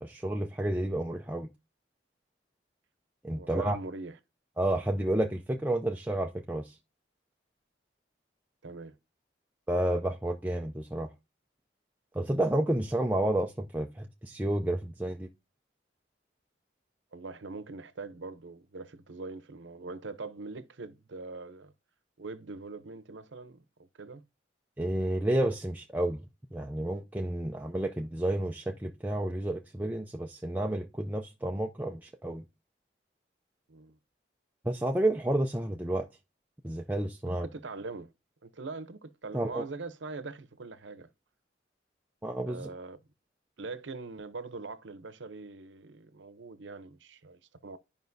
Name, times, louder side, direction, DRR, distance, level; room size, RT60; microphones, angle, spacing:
voice 1, 0.0-1.5 3.2-3.8 4.6-6.8 9.7-11.1 12.1-15.3 24.8-26.2 26.5-32.4 34.6-36.1 36.6-37.5 39.3-39.7 42.2-42.7, right 1 dB, 10° right, 0.4 m, -30 dB
voice 2, 3.3-4.2 8.6-8.9 17.1-21.7 22.2-23.6 24.0-24.2 33.7-34.0 37.3-38.1 38.4-41.1 42.5-43.0 43.6-47.8, right 3 dB, 85° right, 0.7 m, -42 dB
11.5 x 5.1 x 2.6 m
head